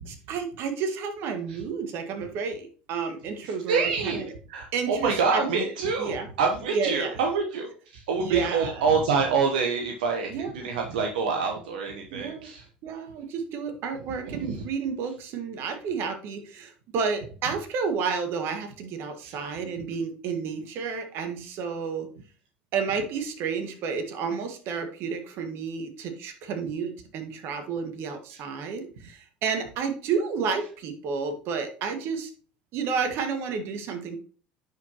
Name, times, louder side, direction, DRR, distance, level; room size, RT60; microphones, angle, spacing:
voice 1, 0.0-4.2 4.7-5.7 6.0-6.3 6.7-7.2 8.2-8.8 10.3-10.5 12.1-12.5 12.8-22.1 22.7-32.3 32.7-34.2, right 5 dB, 60° right, 6 dB, 1.7 m, -31 dB
voice 2, 3.4-12.6 14.3-14.7 19.2-19.4 28.3-28.4, right 5 dB, 80° right, 3 dB, 0.9 m, -27 dB
10.0 x 4.9 x 2.9 m, 0.41 s
hypercardioid pair, 75°, 5 cm